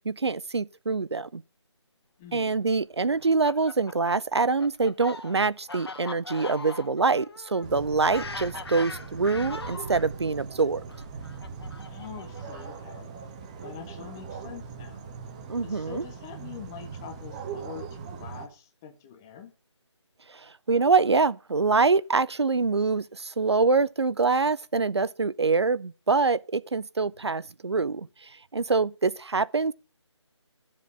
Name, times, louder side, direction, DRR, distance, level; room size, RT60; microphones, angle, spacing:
voice 1, 0.1-1.4 2.3-10.8 15.5-16.0 20.7-28.1 28.5-29.7, right 4 dB, 60° right, 0.6 m, -25 dB
voice 2, 2.2-2.5 11.9-13.1 13.6-15.1 15.6-19.5, left 8 dB, 5° left, 0.5 m, -44 dB
Fowl, 3.2-10.1 10.9-12.9, left 3 dB, 55° left, 1.5 m, -41 dB
sound 1, 7.6-18.5, right 5 dB, 15° right, 1.0 m, -40 dB
13.5 x 7.4 x 5.1 m
figure-of-eight pair, 155°, 15 cm